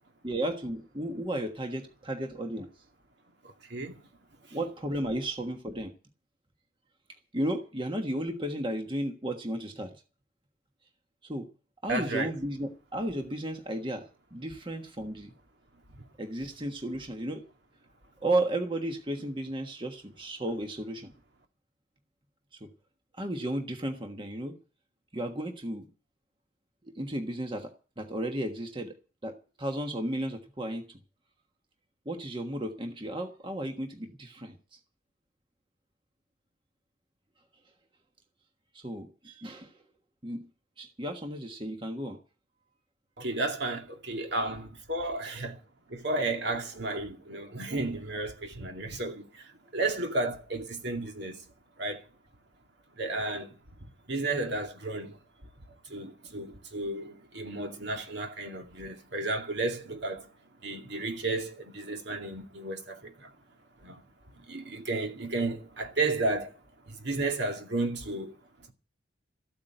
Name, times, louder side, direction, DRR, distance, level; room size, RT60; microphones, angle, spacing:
voice 1, 0.2-2.7 4.5-5.9 7.3-9.9 11.2-11.5 11.8-15.3 16.2-17.4 18.2-21.1 22.6-22.7 23.1-24.6 25.1-25.9 26.8-28.9 29.2-31.0 32.0-34.8 38.7-39.8 40.2-40.5 40.8-42.2 45.2-45.4, right 1 dB, 25° right, 1.4 m, -34 dB
voice 2, 3.4-4.1 11.9-12.3 16.0-16.1 43.2-45.6 45.9-51.4 51.8-52.0 53.0-53.5 54.1-55.2 55.9-60.3 60.6-63.3 63.8-64.0 64.4-66.6 66.9-68.3, right 2 dB, 60° right, 2.3 m, -33 dB
14.0 x 8.6 x 9.0 m
head